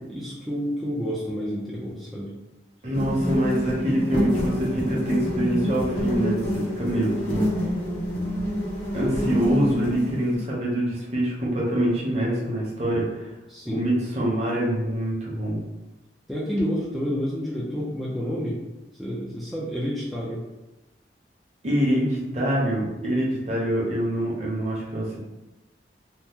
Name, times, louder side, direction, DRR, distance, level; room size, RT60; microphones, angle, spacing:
voice 1, 0.1-2.3 13.5-13.9 16.3-18.6 19.0-20.4, equal, ahead, -7 dB, 0.4 m, -29 dB
voice 2, 2.8-7.4 8.9-13.3 13.7-15.6 21.6-25.2, right 1 dB, 40° right, -4 dB, 0.8 m, -25 dB
sound 1, 2.9-10.3, equal, 65° left, 1.2 m, -27 dB
2.8 x 2.0 x 3.5 m, 1.0 s
head